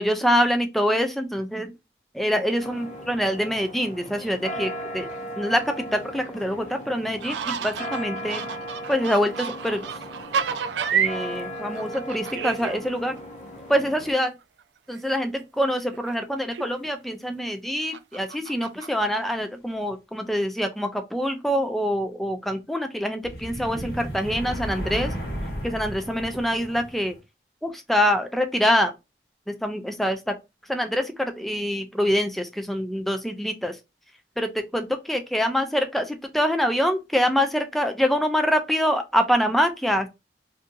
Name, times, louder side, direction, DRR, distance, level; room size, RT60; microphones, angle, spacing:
voice 1, 0.0-1.7 2.1-5.1 5.4-8.5 8.9-9.8 10.9-13.2 13.7-14.3 14.9-25.1 25.6-27.2 27.6-28.9 29.5-30.3 30.7-33.8 34.4-40.1, equal, ahead, 0.4 m, -25 dB
sound 1, 2.6-14.1, equal, 45° left, 0.8 m, -37 dB
sound 2, 7.2-11.2 11.5-12.8 13.2-13.3 14.6-14.7 14.9-15.0 15.4-15.5 15.9-16.1 16.5-17.1 17.9-18.9, right 7 dB, 80° right, 0.4 m, -30 dB
sound 3, 23.2-27.2, equal, 60° left, 1.2 m, -34 dB
2.6 x 2.6 x 3.6 m
head